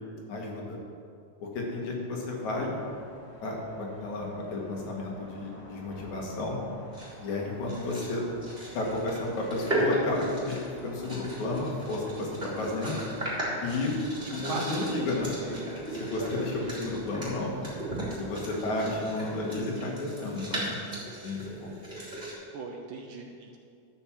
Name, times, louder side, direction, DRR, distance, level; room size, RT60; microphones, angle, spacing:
voice 1, 0.3-0.8 1.4-2.8 3.4-6.6 7.2-8.2 8.7-13.0 13.6-14.0 14.3-15.6 15.9-17.6 18.1-20.8 21.2-21.8, left 2 dB, 75° left, -2 dB, 3.0 m, -32 dB
sound 1, 2.3-19.4, equal, 20° left, 3.1 m, -49 dB
sound 2, 6.9-7.2 7.7-8.1 8.4-22.3, right 1 dB, 15° right, 3.1 m, -37 dB
voice 2, 14.5-15.1 15.4-16.6 18.5-18.7 22.5-23.6, right 3 dB, 90° right, 2 dB, 1.1 m, -39 dB
12.0 x 6.0 x 7.4 m, 2.4 s
omnidirectional pair, 3.5 m